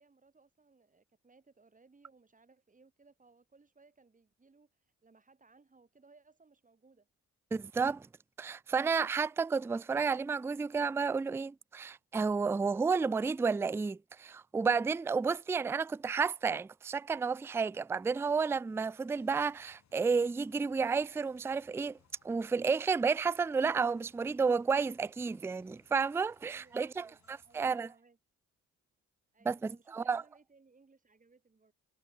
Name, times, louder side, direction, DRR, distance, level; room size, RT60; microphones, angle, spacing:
voice 1, 0.0-7.1 26.4-28.2 29.3-31.7, right 4 dB, 25° right, 7.4 m, -64 dB
voice 2, 7.5-8.1 8.4-22.0 22.2-27.9 29.5-30.2, right 5 dB, 10° right, 0.3 m, -31 dB
sound 1, 19.2-27.6, left 10 dB, 65° left, 8.0 m, -70 dB
cardioid pair, 90°, 30 cm